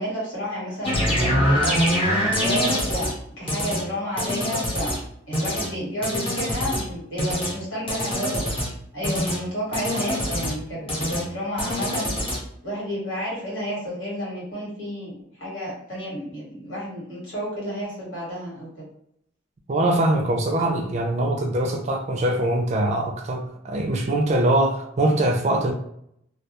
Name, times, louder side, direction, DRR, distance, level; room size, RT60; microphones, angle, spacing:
voice 1, 0.0-2.0 2.4-3.1 3.4-5.0 5.3-8.4 8.9-12.1 12.6-18.9, equal, 75° left, 1.4 m, -31 dB
sound 1, 0.8-3.1 3.5-3.8 4.2-5.0 5.3-5.7 6.0-6.8 7.2-7.5 7.9-8.7 9.0-9.4 9.7-10.5 10.9-11.2 11.6-12.4, equal, 30° left, 0.9 m, -24 dB
voice 2, 19.7-25.7, right 1 dB, 35° right, 0.4 m, -22 dB
2.3 x 2.2 x 2.8 m
head